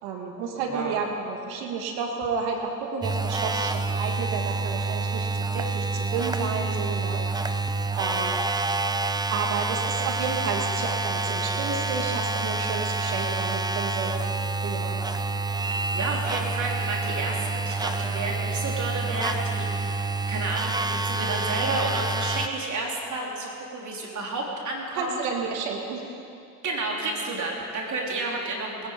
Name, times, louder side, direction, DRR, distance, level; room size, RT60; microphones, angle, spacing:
voice 1, 0.0-5.3 5.5-7.6 7.9-8.3 9.3-14.2 14.6-15.0 25.0-26.0, right 5 dB, 90° right, 2 dB, 1.9 m, -31 dB
voice 2, 0.7-1.0 15.9-20.0 20.3-25.2 26.6-28.9, right 2 dB, 50° right, -1 dB, 3.4 m, -31 dB
sound 1, 3.0-22.5, right 3 dB, 10° right, 0.6 m, -28 dB
20.0 x 10.5 x 5.2 m, 2.6 s
supercardioid pair, 75°, 37 cm